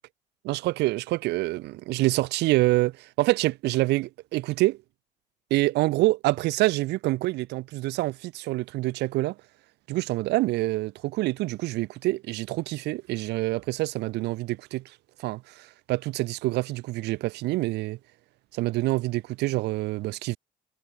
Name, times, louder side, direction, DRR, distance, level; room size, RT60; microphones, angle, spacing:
voice 1, 0.4-4.8 5.5-9.3 9.9-14.8 15.2-18.0 18.5-20.4, right 19 dB, 80° right, 0.8 m, -26 dB
cardioid pair, 110°, 17 cm